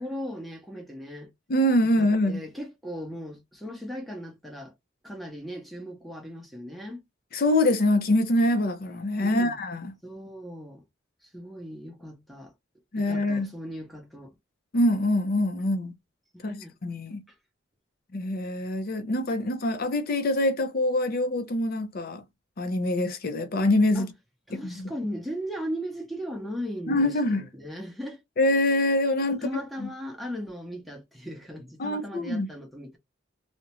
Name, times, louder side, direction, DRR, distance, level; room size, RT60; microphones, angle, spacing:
voice 1, 0.0-1.3 1.8-4.7 5.0-7.0 9.2-9.6 10.0-10.8 11.3-12.5 13.0-14.3 16.3-16.8 17.3-17.4 23.9-24.1 24.5-28.2 29.3-33.0, equal, ahead, 0.7 m, -37 dB
voice 2, 1.5-2.4 7.3-9.9 12.9-13.5 14.7-15.9 16.4-17.2 18.1-22.2 22.6-24.1 24.6-24.9 26.9-27.5 28.4-29.4 29.8-29.9 31.8-32.5, left 1 dB, 50° left, 0.5 m, -24 dB
2.4 x 2.1 x 2.9 m
head